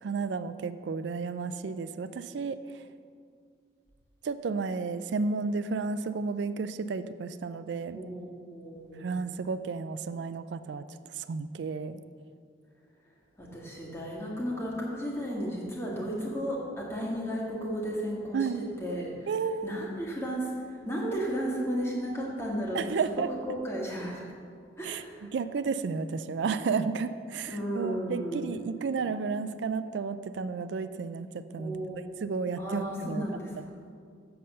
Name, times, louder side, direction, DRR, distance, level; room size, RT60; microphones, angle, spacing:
voice 1, 0.0-2.8 4.2-8.0 9.0-12.0 18.3-18.6 19.3-19.9 22.7-23.3 24.8-31.8 32.2-33.7, right 4 dB, 80° right, 12 dB, 0.4 m, -32 dB
voice 2, 7.9-9.1 13.4-19.3 19.6-22.8 23.5-24.2 24.8-25.3 27.5-28.4 31.6-32.0 32.6-33.6, equal, 15° left, -4 dB, 1.7 m, -34 dB
7.6 x 6.8 x 6.6 m, 2.2 s
head